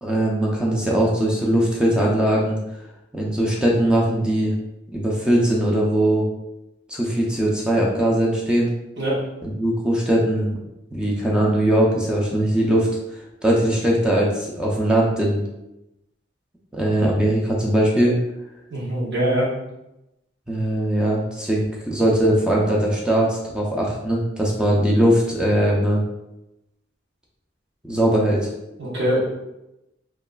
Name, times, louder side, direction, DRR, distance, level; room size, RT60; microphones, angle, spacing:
voice 1, 0.0-2.6 3.1-4.5 4.9-6.2 6.9-8.7 9.4-10.6 10.9-15.4 16.7-18.2 20.5-26.0 27.8-28.5, right 1 dB, 5° right, -3 dB, 0.4 m, -20 dB
voice 2, 18.7-19.5 28.8-29.3, equal, 60° right, -7 dB, 0.8 m, -23 dB
2.9 x 2.3 x 2.2 m, 0.92 s
head